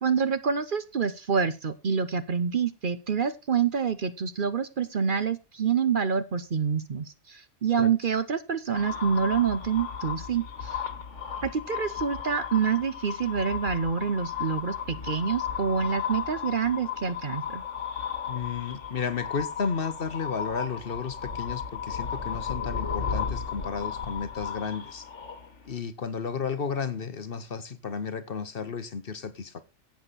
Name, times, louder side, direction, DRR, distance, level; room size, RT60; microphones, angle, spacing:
voice 1, 0.0-10.8 11.4-17.6, right 6 dB, 50° right, 0.9 m, -27 dB
sound 1, 8.7-25.8, left 7 dB, 75° left, 2.0 m, -35 dB
voice 2, 18.3-25.1 25.6-29.6, left 6 dB, 50° left, 1.1 m, -33 dB
12.0 x 8.1 x 4.1 m
omnidirectional pair, 1.2 m